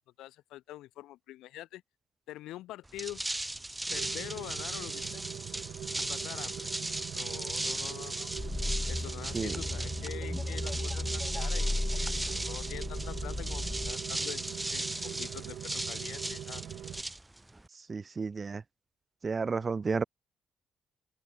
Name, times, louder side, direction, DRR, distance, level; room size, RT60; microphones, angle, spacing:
voice 1, 0.2-1.8 2.3-3.2 3.9-5.3 6.0-6.7 7.1-8.3 8.9-16.6, left 15 dB, 90° left, 4.5 m, -45 dB
sound 1, 2.9-17.7, right 2 dB, 10° right, 2.2 m, -37 dB
Rain, 3.9-17.0, right 11 dB, 70° right, 3.1 m, -43 dB
sound 2, 8.4-13.9, left 2 dB, 15° left, 6.9 m, -35 dB
voice 2, 17.9-18.6 19.2-20.0, right 4 dB, 35° right, 3.3 m, -32 dB
cardioid pair, 90°, 0 cm